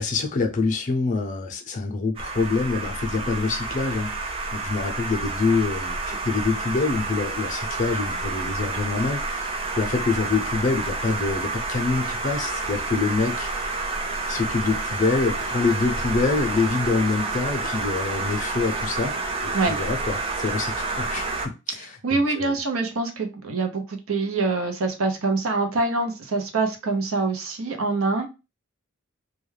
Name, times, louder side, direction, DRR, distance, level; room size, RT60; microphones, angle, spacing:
voice 1, 0.0-13.5 14.3-19.1 19.4-22.6, left 4 dB, 40° left, 0.5 m, -26 dB
sound 1, 2.2-21.5, right 3 dB, 25° right, 0.4 m, -29 dB
voice 2, 21.7-28.3, right 3 dB, 90° right, 0.7 m, -25 dB
2.2 x 2.2 x 3.1 m
head